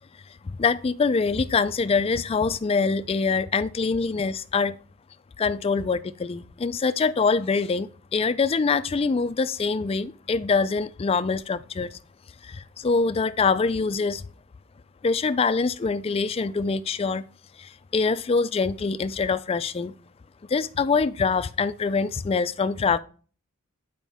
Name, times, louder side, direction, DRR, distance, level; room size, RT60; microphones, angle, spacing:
voice 1, 0.4-4.8 5.4-12.0 12.4-14.2 15.0-17.2 17.6-19.9 20.5-23.0, left 4 dB, 25° left, 0.3 m, -24 dB
8.9 x 5.1 x 3.5 m
head